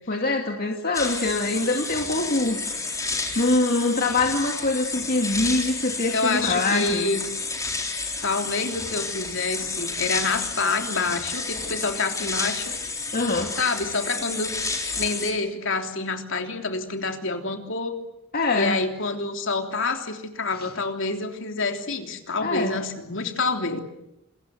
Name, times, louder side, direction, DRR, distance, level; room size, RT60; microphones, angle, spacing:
voice 1, 0.1-2.7 3.4-7.1 13.1-13.5 18.3-18.8 22.4-22.8, left 2 dB, 50° left, 3 dB, 2.3 m, -24 dB
sound 1, 0.9-15.3, left 4 dB, 15° left, 3.8 m, -31 dB
voice 2, 6.1-7.2 8.2-12.7 13.6-14.5 14.9-17.9 18.5-23.8, left 3 dB, 65° left, 5 dB, 3.4 m, -27 dB
27.5 x 22.5 x 7.9 m, 0.89 s
head